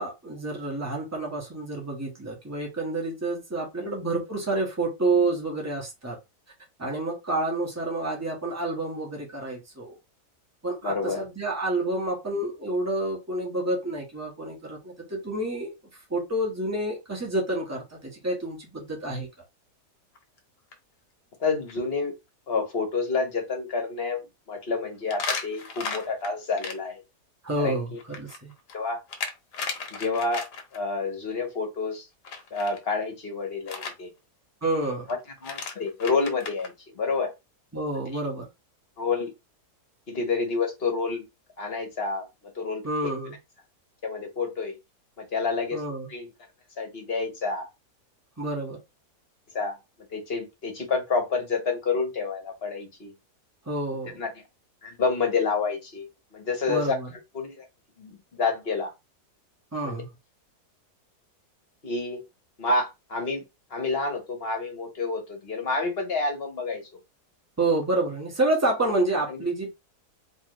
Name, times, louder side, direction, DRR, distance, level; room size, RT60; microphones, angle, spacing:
voice 1, 0.0-6.2 6.8-10.0 10.6-15.7 16.1-19.3 27.4-28.5 34.6-35.1 37.7-38.5 42.8-43.4 45.7-46.1 48.4-48.8 53.6-54.2 56.7-57.1 59.7-60.1 67.6-69.7, right 2 dB, 10° right, 1.3 m, -28 dB
voice 2, 10.8-11.2 21.4-22.1 22.5-27.0 27.6-28.0 28.7-29.0 30.0-32.1 32.5-34.1 35.4-37.3 39.0-39.3 40.1-41.2 41.6-42.3 42.5-42.9 44.0-44.7 45.2-45.8 46.1-46.3 46.8-47.7 49.5-49.8 50.1-53.1 54.1-54.3 54.8-57.0 57.3-57.6 58.0-58.9 59.8-60.0 61.8-62.2 62.6-63.4 63.7-66.9 69.3-69.4, left 4 dB, 40° left, 1.3 m, -29 dB
sound 1, 20.2-20.4 20.7-20.8 21.3-21.4 21.7-21.8 25.1-26.7 28.0-30.8 32.2-32.8 33.7-33.9 35.1-35.2 35.4-36.7, left 5 dB, 85° left, 1.6 m, -35 dB
4.4 x 2.9 x 3.1 m
omnidirectional pair, 1.7 m